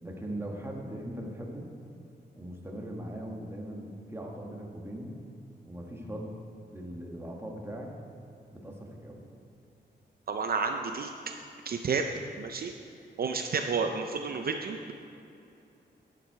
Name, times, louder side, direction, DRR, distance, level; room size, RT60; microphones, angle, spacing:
voice 1, 0.0-1.7 2.3-5.1 5.6-6.4 6.7-7.9 8.5-9.2, right 1 dB, 15° right, 0 dB, 1.3 m, -40 dB
voice 2, 10.3-11.1 11.7-12.0 12.4-12.7 13.2-14.9, right 5 dB, 55° right, 5 dB, 0.5 m, -30 dB
10.5 x 7.6 x 4.6 m, 2.7 s
wide cardioid pair, 125°, 18 cm